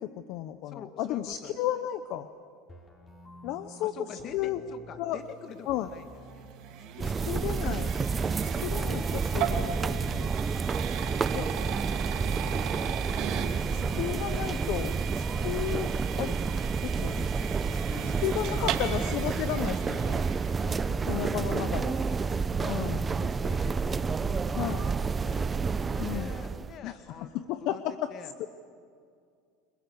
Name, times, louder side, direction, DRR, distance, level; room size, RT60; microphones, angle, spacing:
voice 1, 0.0-2.3 3.4-4.6 5.0-5.2 5.7-5.9 7.3-7.9 8.6-10.3 11.3-11.5 13.7-16.4 16.8-17.2 18.2-20.3 21.1-22.0 22.7-23.1 24.6-24.9 26.0-26.3 26.8-28.1 28.4-28.5, left 12 dB, 65° left, 11 dB, 0.8 m, -33 dB
voice 2, 0.6-1.6 3.2-6.5 6.8-7.6 8.4-9.2 11.2-11.7 12.2-12.9 13.7-14.2 17.0-19.0 20.6-22.2 22.6-25.5 25.9-27.8 28.1-28.3, left 7 dB, 45° left, 8 dB, 1.9 m, -46 dB
sound 1, 2.7-8.7, right 1 dB, 25° left, 5.7 m, -52 dB
sound 2, 5.9-21.1, right 10 dB, 60° right, 2.7 m, -38 dB
sound 3, 7.0-26.8, right 5 dB, 25° right, 0.6 m, -30 dB
29.5 x 21.0 x 7.0 m, 2.3 s
supercardioid pair, 110°, 0 cm